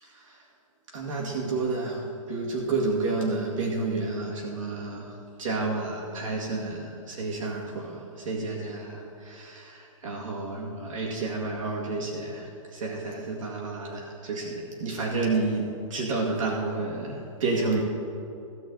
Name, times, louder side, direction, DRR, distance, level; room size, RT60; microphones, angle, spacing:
voice 1, 0.0-0.4 0.9-17.8, right 3 dB, 80° right, -3 dB, 2.1 m, -30 dB
16.5 x 7.0 x 4.0 m, 2.8 s
hypercardioid pair, 165°, 17 cm